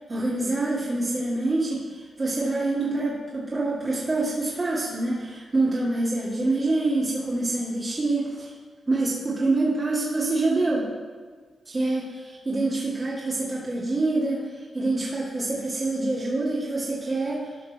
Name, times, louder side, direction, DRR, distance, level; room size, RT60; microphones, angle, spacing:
voice 1, 0.1-8.5 8.9-10.8 11.7-14.4 14.7-17.4, right 2 dB, 35° right, -7 dB, 1.9 m, -26 dB
13.0 x 5.8 x 3.4 m, 1.5 s
cardioid pair, 70°, 0 cm